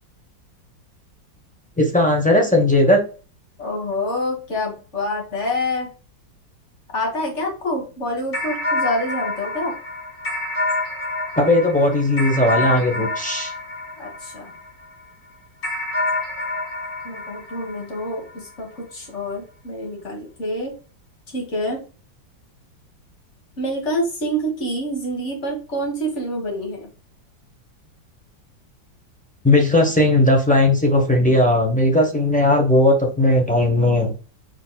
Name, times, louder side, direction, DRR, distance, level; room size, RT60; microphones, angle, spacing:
voice 1, 1.8-3.0 11.4-13.5 29.4-34.1, left 1 dB, 10° left, 1 dB, 0.3 m, -17 dB
voice 2, 3.6-5.9 6.9-9.7 14.0-14.5 17.0-20.7 21.3-21.8 23.6-26.9, equal, 40° left, 0 dB, 1.8 m, -27 dB
sound 1, 8.3-14.9 15.6-18.4, left 2 dB, 70° left, 3.3 m, -27 dB
4.6 x 4.6 x 2.2 m, 0.36 s
omnidirectional pair, 2.0 m